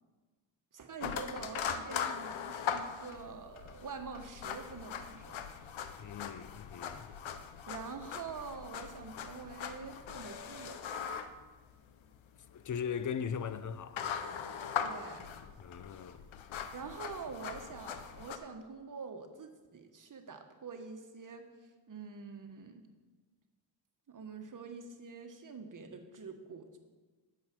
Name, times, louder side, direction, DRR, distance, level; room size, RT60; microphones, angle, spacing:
voice 1, 0.7-5.5 7.7-10.9 14.8-15.3 16.7-21.5 21.9-22.8 24.1-26.8, right 5 dB, 40° right, 1.3 m, -46 dB
sound 1, 1.0-18.4, left 8 dB, 75° left, 0.8 m, -41 dB
voice 2, 6.0-7.1 12.5-14.1 15.6-16.2, left 7 dB, 40° left, 0.7 m, -39 dB
9.5 x 6.9 x 6.1 m
cardioid pair, 90°, 47 cm